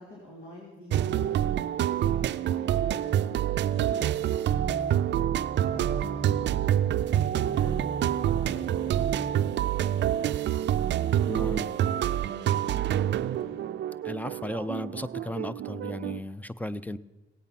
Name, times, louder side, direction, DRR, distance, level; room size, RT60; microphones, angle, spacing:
voice 1, 0.0-1.4 1.8-5.0 5.7-10.3 11.1-13.7, left 1 dB, 80° left, -4 dB, 3.1 m, -47 dB
sound 1, 0.9-16.2, right 11 dB, 65° right, 0.4 m, -27 dB
sound 2, 4.5-9.6 10.2-10.3, right 3 dB, 15° right, 1.1 m, -38 dB
voice 2, 11.3-11.7 14.0-17.0, left 1 dB, 10° left, 16 dB, 0.4 m, -35 dB
17.0 x 8.6 x 5.8 m, 1.1 s
cardioid pair, 90°, 20 cm